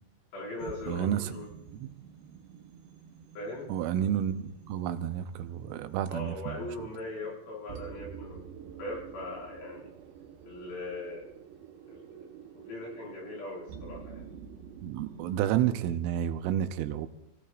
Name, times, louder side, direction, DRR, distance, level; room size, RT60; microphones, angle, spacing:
voice 1, 0.3-1.5 3.4-3.7 6.1-8.5 8.8-9.9 10.4-11.3 11.9-12.3 12.5-14.3, left 2 dB, 65° left, -4 dB, 7.6 m, -40 dB
sound 1, 0.6-16.0, right 7 dB, 75° right, 2.9 m, -49 dB
voice 2, 0.9-1.3 1.7-1.9 3.7-6.7 14.8-17.1, right 10 dB, 90° right, 10 dB, 3.4 m, -30 dB
27.0 x 16.5 x 2.5 m, 0.82 s
omnidirectional pair, 5.6 m